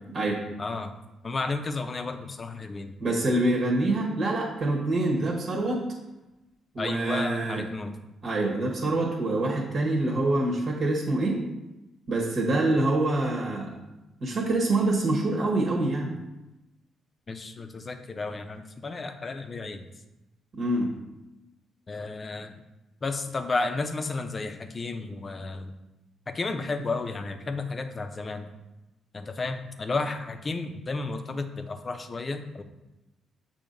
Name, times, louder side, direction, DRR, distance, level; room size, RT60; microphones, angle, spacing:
voice 1, 0.6-0.9 1.2-3.0 6.8-8.0 17.3-19.9 21.9-22.5 23.0-25.7 26.3-28.5 29.1-32.6, left 3 dB, 35° left, 7 dB, 0.6 m, -32 dB
voice 2, 3.0-5.9 6.7-7.6 8.2-11.4 12.1-13.7 14.2-16.1 20.5-20.9, right 2 dB, 50° right, -1 dB, 1.3 m, -25 dB
6.9 x 2.8 x 5.2 m, 0.98 s
cardioid pair, 90°, 0 cm